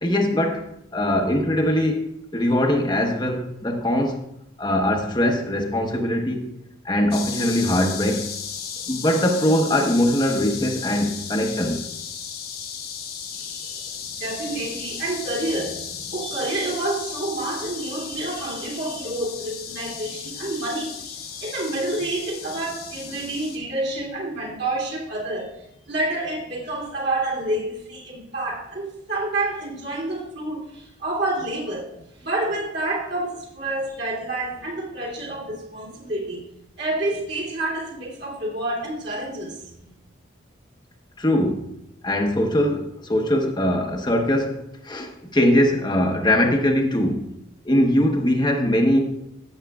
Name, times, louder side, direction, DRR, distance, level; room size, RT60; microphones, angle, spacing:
voice 1, 0.0-4.2 4.6-6.4 6.8-8.3 8.9-11.8 41.2-41.7 42.0-47.2 47.6-49.0, left 1 dB, 20° left, 1.0 m, -21 dB
sound 1, 7.1-23.6, left 7 dB, 50° left, 1.2 m, -35 dB
voice 2, 13.3-31.9 32.2-36.4 36.8-39.6, right 2 dB, 55° right, 2.8 m, -28 dB
15.5 x 7.4 x 2.4 m
head